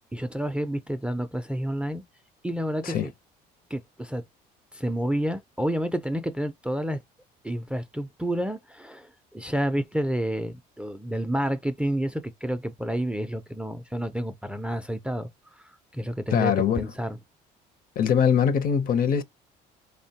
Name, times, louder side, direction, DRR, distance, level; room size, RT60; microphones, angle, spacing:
voice 1, 0.0-2.0 2.4-3.1 3.7-4.2 4.7-7.0 7.4-15.3 15.9-17.2, right 1 dB, 5° right, 0.4 m, -29 dB
voice 2, 16.3-16.9 18.0-19.2, left 7 dB, 55° left, 0.6 m, -22 dB
3.1 x 2.1 x 2.7 m
cardioid pair, 95°, 18 cm